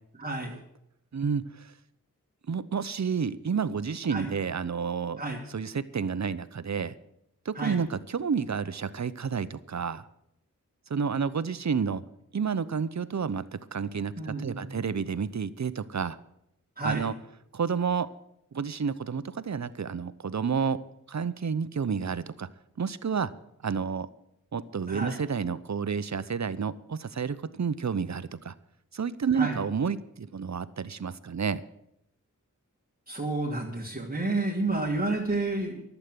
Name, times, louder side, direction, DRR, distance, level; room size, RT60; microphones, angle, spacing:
voice 1, 0.2-0.6 4.1-4.3 5.2-5.4 7.5-7.8 14.2-14.9 16.8-17.1 24.9-25.2 29.3-29.6 33.1-35.8, right 2 dB, 25° right, -3 dB, 3.0 m, -30 dB
voice 2, 1.1-1.7 2.5-5.2 5.5-6.9 7.4-10.0 10.9-12.0 12.3-16.2 16.8-17.1 17.5-18.1 18.5-20.8 21.1-22.5 22.8-23.3 23.6-24.1 24.5-28.5 28.9-31.6, right 6 dB, 60° right, 14 dB, 0.9 m, -30 dB
11.5 x 8.3 x 9.3 m, 0.77 s
cardioid pair, 45°, 32 cm